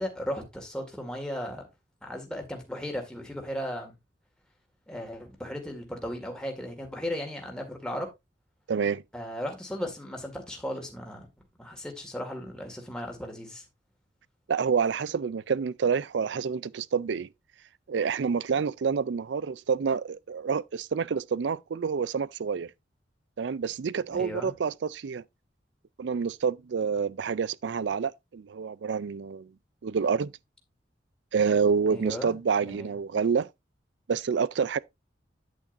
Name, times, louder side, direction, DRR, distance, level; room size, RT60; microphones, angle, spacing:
voice 1, 0.0-1.6 2.0-3.9 4.9-8.1 9.1-11.3 11.6-13.6 24.1-24.5 31.9-32.9, equal, 5° left, 1.9 m, -36 dB
voice 2, 8.7-9.0 14.5-17.3 17.9-22.7 23.4-25.2 26.0-29.5 29.8-30.3 31.3-33.5 34.1-34.8, right 6 dB, 65° right, 0.4 m, -28 dB
8.8 x 8.5 x 2.6 m
head